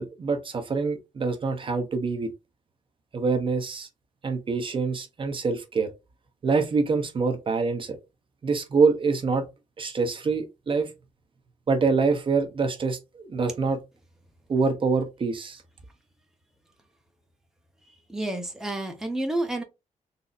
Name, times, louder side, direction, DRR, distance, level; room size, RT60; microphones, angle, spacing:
voice 1, 0.0-2.3 3.1-3.9 4.2-5.9 6.4-8.0 8.4-9.5 9.8-10.9 11.7-13.8 14.5-15.6, right 4 dB, 40° right, 0.8 m, -25 dB
voice 2, 18.1-19.6, right 1 dB, 5° right, 0.7 m, -29 dB
4.0 x 2.7 x 2.4 m
cardioid pair, 110°, 13 cm